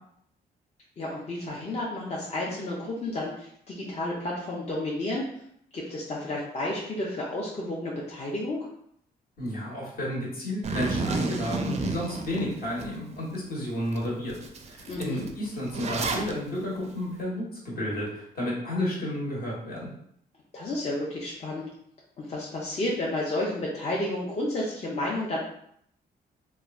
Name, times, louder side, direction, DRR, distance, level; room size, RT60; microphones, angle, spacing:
voice 1, 1.0-5.2 5.7-8.6 14.9-15.2 20.5-21.7 22.2-25.4, left 1 dB, 40° left, -4 dB, 0.6 m, -31 dB
voice 2, 9.4-14.4 14.6-19.9, left 1 dB, 65° left, -4 dB, 1.2 m, -31 dB
Zipper (clothing), 10.6-12.9 13.3-13.4 13.9-14.0 14.3-16.3, right 3 dB, 40° right, 0.4 m, -31 dB
3.1 x 2.2 x 2.4 m, 0.70 s
cardioid pair, 85°, 17 cm